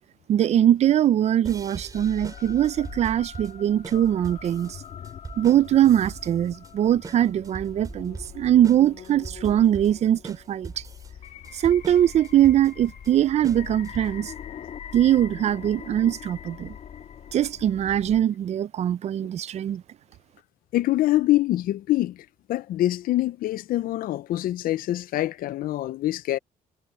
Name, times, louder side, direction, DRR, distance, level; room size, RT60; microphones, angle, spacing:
voice 1, 0.3-4.8 5.4-10.8 11.5-14.3 14.9-16.7 17.3-19.8, right 11 dB, 45° right, 0.4 m, -22 dB
sound 1, 1.4-14.3, right 4 dB, 25° right, 3.6 m, -41 dB
sound 2, 1.9-18.2, left 8 dB, 55° left, 1.5 m, -42 dB
voice 2, 20.7-26.4, left 15 dB, 70° left, 0.5 m, -25 dB
cardioid pair, 160°, 15 cm